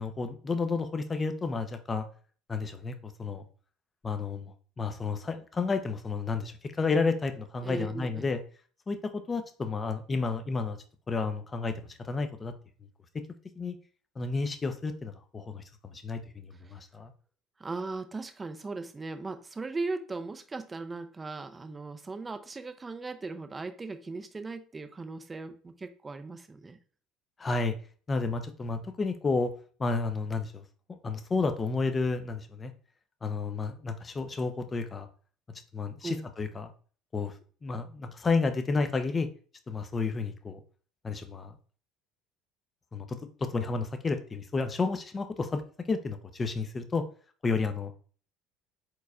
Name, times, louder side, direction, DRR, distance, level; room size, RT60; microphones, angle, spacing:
voice 1, 0.0-2.1 2.5-3.4 4.0-8.4 8.9-10.8 11.1-12.5 13.1-13.2 13.6-13.8 14.2-17.1 27.4-27.7 28.1-29.5 29.8-30.6 31.0-32.7 33.2-35.1 35.7-36.7 37.1-37.3 37.6-39.3 39.7-40.6 41.0-41.5 42.9-43.1 43.4-45.6 45.9-47.0 47.4-47.9, left 4 dB, 30° left, 9 dB, 0.7 m, -31 dB
voice 2, 7.6-8.3 16.6-16.8 17.6-26.8 36.0-36.3, right 3 dB, 25° right, 8 dB, 0.6 m, -38 dB
4.6 x 4.0 x 2.4 m, 0.41 s
hypercardioid pair, 70°, 0 cm